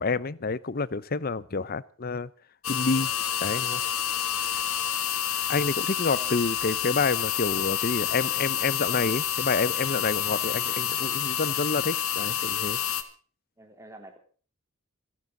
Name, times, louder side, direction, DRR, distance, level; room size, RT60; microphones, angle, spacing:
voice 1, 0.0-2.3 2.7-3.1 3.4-3.8 5.5-12.8, left 4 dB, 45° left, 19 dB, 0.7 m, -28 dB
sound 1, 2.6-13.0, left 10 dB, 85° left, 1.8 m, -28 dB
voice 2, 13.6-14.2, right 1 dB, 15° right, 4 dB, 3.4 m, -49 dB
27.5 x 11.0 x 3.9 m, 0.41 s
head